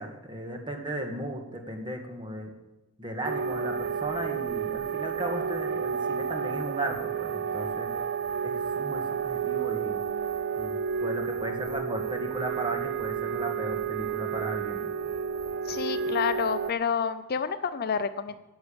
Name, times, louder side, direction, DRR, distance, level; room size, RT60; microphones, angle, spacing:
voice 1, 0.0-2.5 3.0-7.9 8.4-10.0 10.6-14.9, right 1 dB, 25° right, 3 dB, 1.8 m, -36 dB
sound 1, 3.2-16.7, right 7 dB, 55° right, 0.4 m, -31 dB
voice 2, 15.7-18.4, left 6 dB, 50° left, 12 dB, 0.5 m, -29 dB
10.5 x 7.1 x 8.7 m, 1.0 s
head